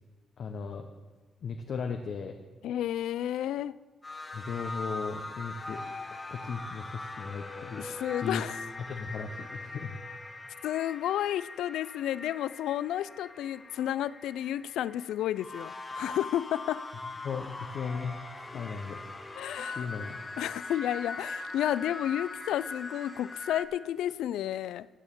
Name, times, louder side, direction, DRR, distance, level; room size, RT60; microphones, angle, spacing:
voice 1, 0.4-0.9 1.4-2.3 4.3-7.9 8.2-8.4 8.9-10.0 17.2-18.2 18.5-19.0 19.7-20.2, left 5 dB, 50° left, 0.7 m, -36 dB
voice 2, 2.6-3.8 7.8-8.6 10.6-16.8 18.5-18.7 19.4-19.9 20.4-24.9, left 12 dB, 90° left, 0.3 m, -32 dB
sound 1, 4.0-23.7, left 3 dB, 15° left, 0.9 m, -41 dB
10.0 x 7.9 x 6.9 m
cardioid pair, 150°, 0 cm